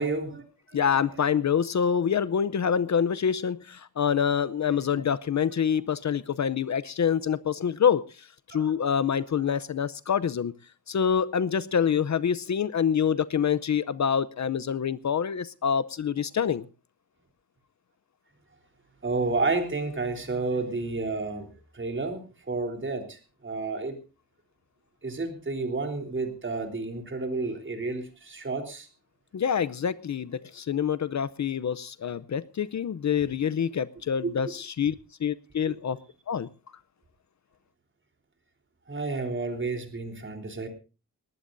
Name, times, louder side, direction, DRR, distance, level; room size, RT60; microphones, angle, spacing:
voice 1, 0.0-1.0 4.9-5.0 8.5-8.7 9.1-9.2 19.0-21.5 21.7-23.9 25.0-28.9 34.2-34.5 35.7-35.8 38.9-40.7, right 3 dB, 35° right, 3.6 m, -31 dB
voice 2, 0.7-8.0 8.5-10.5 10.9-16.7 29.3-34.9 35.2-36.0 36.3-36.5, left 7 dB, 50° left, 0.7 m, -26 dB
20.0 x 19.0 x 2.6 m
wide cardioid pair, 170°, 35 cm